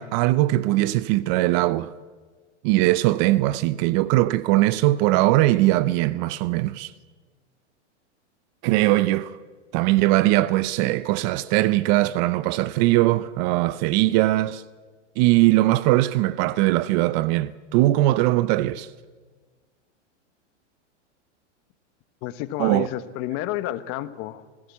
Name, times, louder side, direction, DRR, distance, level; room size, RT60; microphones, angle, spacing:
voice 1, 0.0-1.9 2.6-6.9 8.6-9.4 9.7-14.6 15.2-18.9 22.6-22.9, right 17 dB, 40° right, 0.6 m, -20 dB
voice 2, 22.2-24.7, left 14 dB, 40° left, 1.1 m, -31 dB
19.5 x 16.0 x 8.4 m
supercardioid pair, 140°, 36 cm